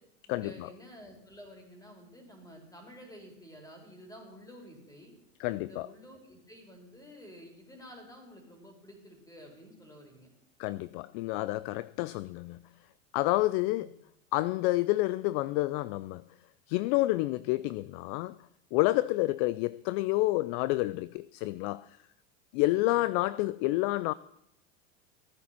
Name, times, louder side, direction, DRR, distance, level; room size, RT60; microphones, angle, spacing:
voice 1, 0.3-5.1 5.5-10.3 22.6-23.1, equal, 10° left, 4.4 m, -51 dB
voice 2, 5.4-5.9 10.6-12.6 13.1-14.0 14.3-16.2 16.7-18.4 18.7-22.0 22.5-24.1, left 19 dB, 45° left, 0.4 m, -29 dB
15.0 x 9.3 x 5.9 m
hypercardioid pair, 95°, 39 cm